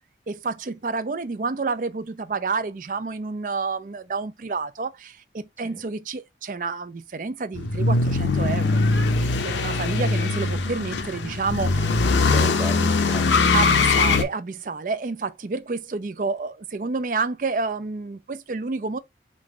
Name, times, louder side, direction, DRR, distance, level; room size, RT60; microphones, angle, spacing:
voice 1, 0.3-8.9 9.2-12.1 13.5-19.0, right 4 dB, 45° right, 0.4 m, -29 dB
sound 1, 7.5-14.2, left 3 dB, 90° left, 0.6 m, -21 dB
voice 2, 11.8-13.6, right 1 dB, 10° right, 0.7 m, -35 dB
3.8 x 2.6 x 4.7 m
head